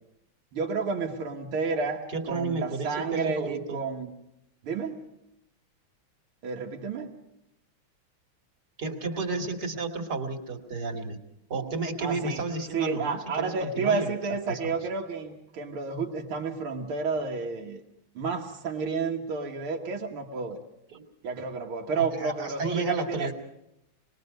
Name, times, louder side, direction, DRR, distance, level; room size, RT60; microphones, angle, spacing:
voice 1, 0.5-4.1 4.6-5.1 6.4-7.1 12.0-12.4 12.7-17.8 18.2-20.6 21.2-23.3, right 4 dB, 85° right, 0 dB, 2.3 m, -31 dB
voice 2, 2.1-3.8 8.8-11.2 11.5-14.7 20.9-21.0 21.9-23.3, right 3 dB, 50° right, 4 dB, 2.7 m, -32 dB
26.5 x 20.5 x 5.3 m, 0.84 s
omnidirectional pair, 2.3 m